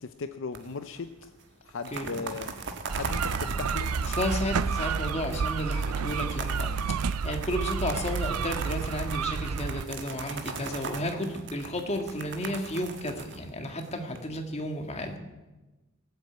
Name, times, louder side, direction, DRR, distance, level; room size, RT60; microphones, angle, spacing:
voice 1, 0.0-1.3 1.6-2.5 2.9-3.9, left 4 dB, 60° left, 10 dB, 0.6 m, -37 dB
sound 1, 0.6-1.0 1.2-1.3 1.7-14.2, right 4 dB, 55° right, 1.4 m, -39 dB
voice 2, 1.9-2.2 4.1-6.7 7.2-15.2, left 1 dB, 30° left, 4 dB, 1.8 m, -32 dB
sound 2, 2.9-9.8, right 6 dB, 90° right, 0.5 m, -30 dB
18.5 x 8.0 x 8.1 m, 1.1 s
head